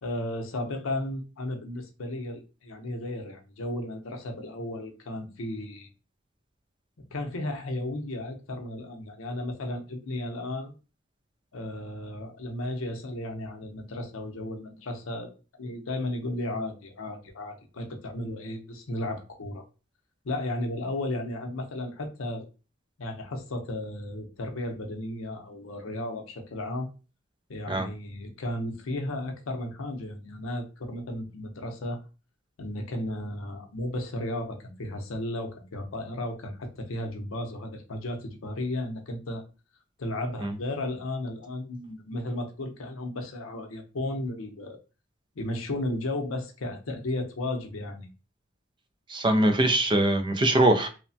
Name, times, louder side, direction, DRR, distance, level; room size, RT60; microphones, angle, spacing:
voice 1, 0.0-5.9 7.1-10.7 11.5-15.3 15.6-19.6 20.2-22.5 23.0-26.9 27.5-32.0 32.6-39.4 40.0-44.8 45.4-48.1, left 1 dB, 80° left, 4 dB, 0.6 m, -34 dB
voice 2, 49.1-50.9, right 1 dB, 25° right, 6 dB, 0.4 m, -22 dB
3.1 x 2.1 x 2.6 m, 0.32 s
head